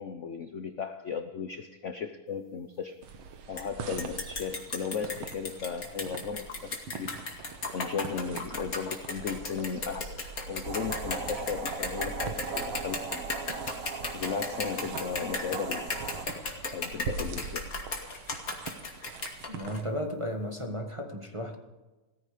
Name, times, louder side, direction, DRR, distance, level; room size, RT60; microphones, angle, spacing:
voice 1, 0.0-3.0 3.5-7.1 7.7-13.2 14.1-15.9 16.7-17.7, left 6 dB, 60° left, 8 dB, 0.7 m, -36 dB
sound 1, 3.0-19.8, right 6 dB, 75° right, 2.1 m, -44 dB
sound 2, 3.6-3.7 4.0-19.8, left 3 dB, 40° left, 2.6 m, -35 dB
sound 3, 10.6-16.2, right 5 dB, 45° right, 1.3 m, -38 dB
voice 2, 19.5-21.6, equal, 15° right, 2 dB, 1.3 m, -34 dB
17.5 x 15.0 x 5.1 m, 1.2 s
omnidirectional pair, 2.4 m